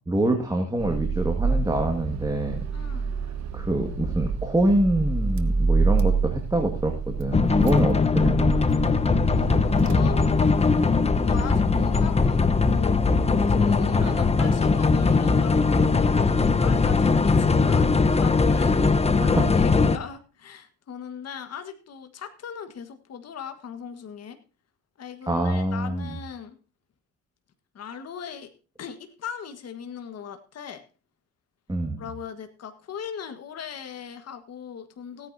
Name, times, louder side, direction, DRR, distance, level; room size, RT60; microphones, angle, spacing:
voice 1, 0.1-2.6 3.5-8.6 14.0-14.3 19.2-19.4 25.3-26.1 31.7-32.0, right 1 dB, 10° right, 3 dB, 1.9 m, -25 dB
Car / Engine starting, 0.8-10.8, right 4 dB, 65° right, 1.3 m, -27 dB
voice 2, 2.7-3.1 9.3-10.2 11.2-13.0 13.5-24.4 25.0-26.6 27.7-28.5 28.8-30.8 32.0-35.3, left 7 dB, 55° left, 8 dB, 1.5 m, -39 dB
sound 1, 7.3-20.0, left 4 dB, 20° left, 0.9 m, -20 dB
17.0 x 9.3 x 2.7 m, 0.35 s
cardioid pair, 90°, 30 cm